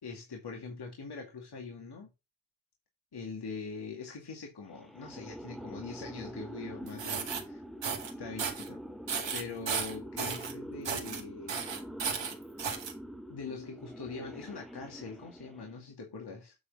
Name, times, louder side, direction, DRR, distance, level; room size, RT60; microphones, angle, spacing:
voice 1, 0.0-2.1 3.1-7.6 8.2-8.8 9.3-11.6 13.3-16.5, left 4 dB, 55° left, 2.3 m, -43 dB
sound 1, 4.7-15.9, equal, ahead, 1.3 m, -45 dB
sound 2, 6.9-7.4 7.8-8.1 8.4-8.7 9.1-10.5 10.8-11.2 11.5-12.9, right 6 dB, 70° right, 2.0 m, -34 dB
8.5 x 3.6 x 5.4 m
cardioid pair, 50°, 46 cm